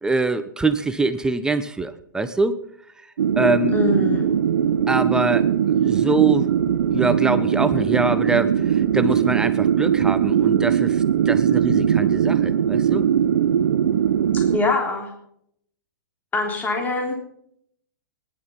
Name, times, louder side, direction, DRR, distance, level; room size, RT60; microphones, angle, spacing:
voice 1, 0.0-2.6 3.4-3.8 4.9-6.5 6.9-13.1, right 3 dB, 5° right, 11 dB, 1.1 m, -24 dB
sound 1, 3.2-14.6, right 8 dB, 75° right, 0.8 m, -20 dB
voice 2, 3.7-4.3 14.3-15.1 16.3-17.2, left 2 dB, 15° left, 2 dB, 3.6 m, -23 dB
18.0 x 11.5 x 5.6 m, 0.69 s
hypercardioid pair, 125°, 11 cm